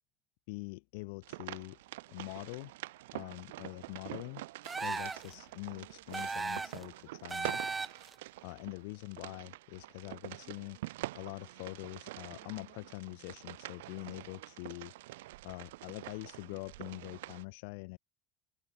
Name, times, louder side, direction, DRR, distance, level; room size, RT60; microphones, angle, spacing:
voice 1, 0.5-1.8 2.1-2.7 3.1-4.4 4.8-7.8 8.4-10.8 11.1-14.9 15.4-18.0, left 31 dB, 75° left, 5.8 m, -44 dB
sound 1, 1.2-17.4, right 18 dB, 90° right, 3.9 m, -46 dB
sound 2, 4.6-5.3 6.1-6.8 7.3-8.1, right 4 dB, 20° right, 1.1 m, -36 dB
open air
supercardioid pair, 110°, 0 cm